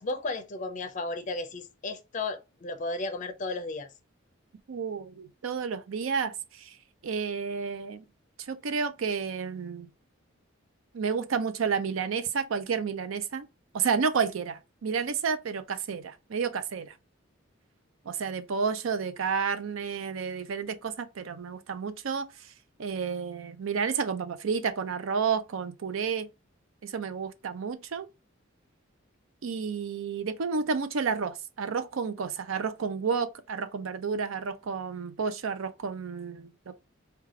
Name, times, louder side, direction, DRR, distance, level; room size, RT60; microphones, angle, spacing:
voice 1, 0.0-3.9, left 2 dB, 40° left, 0.5 m, -34 dB
voice 2, 4.7-6.8 7.0-8.0 8.4-9.9 10.9-13.5 13.7-16.9 18.1-22.3 22.8-26.3 26.8-28.1 29.4-36.8, right 5 dB, 80° right, 0.5 m, -31 dB
3.2 x 2.3 x 3.5 m
head